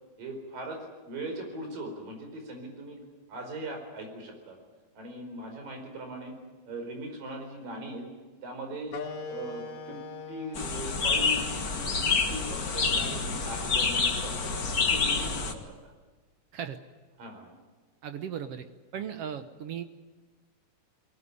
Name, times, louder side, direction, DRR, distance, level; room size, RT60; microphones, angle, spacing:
voice 1, 0.2-0.8 1.0-3.0 3.3-4.6 4.9-6.3 6.7-8.0 8.4-9.0 9.3-10.0 10.3-14.5 14.8-15.9 17.2-17.5 19.0-19.1, right 1 dB, 85° right, 4 dB, 6.3 m, -40 dB
sound 1, 8.9-14.0, left 4 dB, 60° left, 2.8 m, -43 dB
sound 2, 10.5-15.5, left 4 dB, 35° left, 1.6 m, -28 dB
voice 2, 18.0-18.6 18.9-19.8, right 8 dB, 65° right, 9 dB, 1.6 m, -36 dB
22.5 x 18.5 x 9.9 m, 1.3 s
omnidirectional pair, 3.8 m